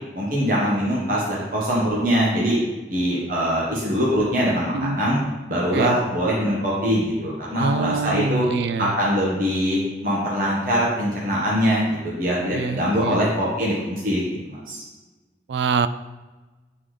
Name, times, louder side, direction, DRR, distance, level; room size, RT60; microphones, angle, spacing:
voice 1, 0.1-2.6 2.9-5.2 5.5-8.5 8.8-14.8, equal, 50° right, -5 dB, 1.2 m, -23 dB
voice 2, 7.6-8.9 12.5-13.2 15.5-15.9, right 4 dB, 75° right, 12 dB, 0.3 m, -25 dB
8.5 x 3.8 x 3.2 m, 1.2 s
head